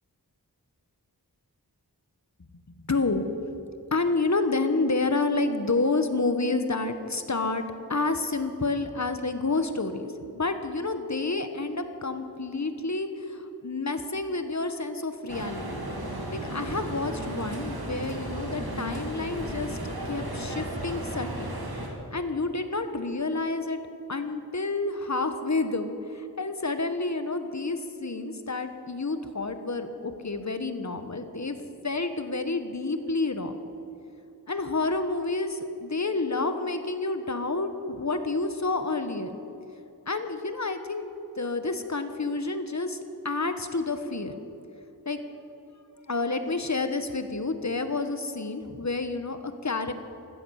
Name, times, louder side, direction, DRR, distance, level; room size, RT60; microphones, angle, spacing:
voice 1, 2.9-3.3 3.9-7.6 7.9-15.7 16.3-19.8 20.1-21.5 22.1-23.8 24.1-31.6 31.8-33.5 34.5-39.3 40.1-41.0 41.4-43.0 43.2-44.3 45.0-45.2 46.1-49.9, left 3 dB, 45° left, 8 dB, 1.3 m, -29 dB
sound 1, 15.3-21.9, right 1 dB, 70° right, 2.7 m, -34 dB
16.0 x 13.5 x 6.5 m, 2.8 s
wide cardioid pair, 40°, 39 cm